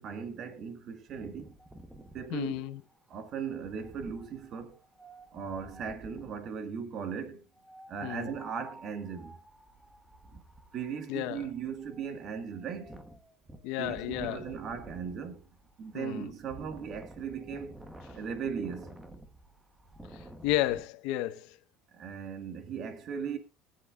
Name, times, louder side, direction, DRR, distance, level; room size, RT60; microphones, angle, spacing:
voice 1, 0.0-1.5 2.1-2.6 3.1-4.8 5.3-7.4 7.9-9.4 10.3-10.4 10.7-13.0 13.8-15.5 15.8-17.8 18.1-19.0 21.9-23.4, right 6 dB, 40° right, 1.7 m, -38 dB
Wind, 1.1-6.5 7.6-20.8, right 1 dB, 5° right, 1.1 m, -52 dB
voice 2, 2.3-2.8 8.0-8.3 11.1-11.5 13.6-14.4 15.9-16.3 20.1-21.6, left 15 dB, 75° left, 0.8 m, -32 dB
23.0 x 7.7 x 2.4 m
cardioid pair, 165°, 0 cm